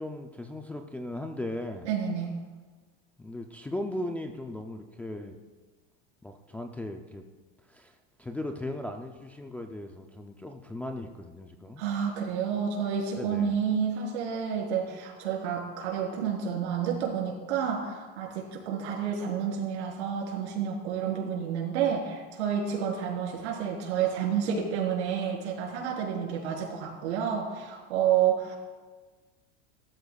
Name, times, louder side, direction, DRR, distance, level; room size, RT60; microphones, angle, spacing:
voice 1, 0.0-1.9 3.2-5.4 6.2-7.2 7.7-11.8 13.2-13.6, left 1 dB, 5° left, 3 dB, 0.3 m, -37 dB
voice 2, 1.8-2.4 11.8-28.6, right 7 dB, 85° right, -1 dB, 3.9 m, -29 dB
17.0 x 13.0 x 2.3 m, 1.3 s
supercardioid pair, 145°, 33 cm